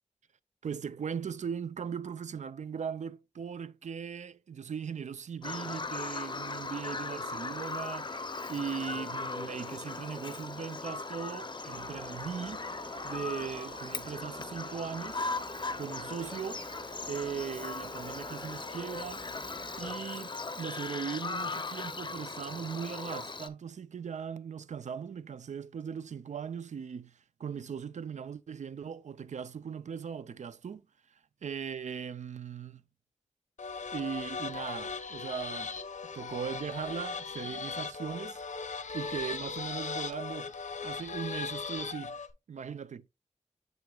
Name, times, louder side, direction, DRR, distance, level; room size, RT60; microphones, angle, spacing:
voice 1, 0.6-12.7 13.0-15.3 15.8-16.6 17.1-19.2 19.8-30.8 31.1-32.8 33.9-35.7 36.1-38.4 38.9-40.5 40.8-42.2 42.5-43.1, right 7 dB, 75° right, 0.4 m, -39 dB
Bird vocalization bird call bird song, 5.4-23.5, left 3 dB, 40° left, 0.5 m, -38 dB
sound 1, 11.7-20.0, right 3 dB, 50° right, 0.7 m, -50 dB
sound 2, 33.6-42.3, left 5 dB, 85° left, 0.6 m, -38 dB
7.1 x 6.2 x 2.3 m
wide cardioid pair, 80°, 12 cm